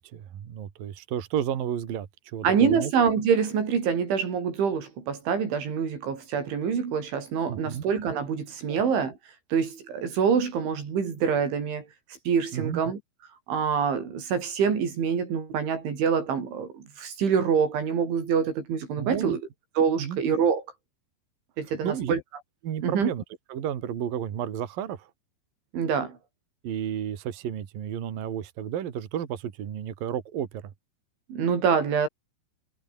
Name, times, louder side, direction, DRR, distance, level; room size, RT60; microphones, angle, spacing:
voice 1, 0.0-2.9 7.5-7.8 8.7-8.8 12.5-12.8 19.0-19.4 20.0-20.2 21.8-22.1 22.6-23.2 23.5-25.1 26.6-30.7, right 9 dB, 55° right, 3.6 m, -32 dB
voice 2, 2.4-9.2 9.5-11.9 12.3-13.0 13.5-19.4 19.8-20.6 21.6-22.2 22.8-23.1 25.7-26.2 31.3-32.1, right 6 dB, 85° right, 7.5 m, -25 dB
omnidirectional pair, 5.3 m